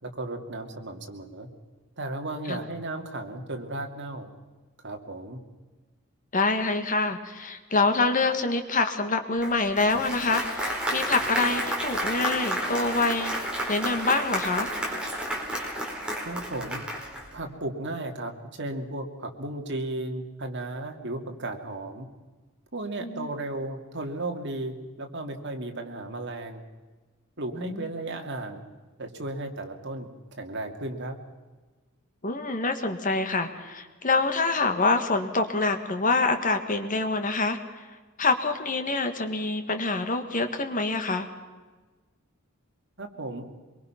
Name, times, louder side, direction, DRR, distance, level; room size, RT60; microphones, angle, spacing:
voice 1, 0.0-1.5 2.0-4.3 4.8-5.4 16.2-16.8 17.3-22.1 22.7-26.6 27.4-28.6 29.0-31.2 43.0-43.4, right 2 dB, 55° right, 4 dB, 2.5 m, -35 dB
voice 2, 6.3-13.3 13.7-14.7 23.0-23.3 27.5-27.9 32.2-37.6 38.2-41.3, left 3 dB, 40° left, 7 dB, 1.8 m, -26 dB
Applause, 9.4-17.3, right 1 dB, 5° right, 4.6 m, -31 dB
24.5 x 23.0 x 5.9 m, 1.3 s
head